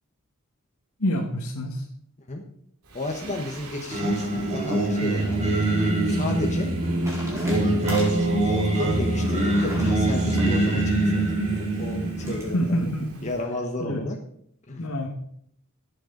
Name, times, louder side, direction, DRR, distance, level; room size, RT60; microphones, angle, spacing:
voice 1, 1.0-1.8 12.5-13.2 13.8-14.0 14.8-15.1, equal, 75° left, 0 dB, 1.6 m, -27 dB
voice 2, 2.9-5.5 6.1-6.7 7.4-7.8 8.5-12.8 13.2-14.2 14.7-14.8, left 1 dB, 35° left, 1 dB, 1.2 m, -33 dB
Singing, 2.9-13.4, equal, 85° right, 2.2 m, -30 dB
Singing 2, 3.9-12.4, right 2 dB, 30° right, 2.7 m, -25 dB
sound 1, 5.6-12.5, left 1 dB, 15° right, 4.4 m, -42 dB
18.0 x 8.0 x 3.9 m, 0.68 s
head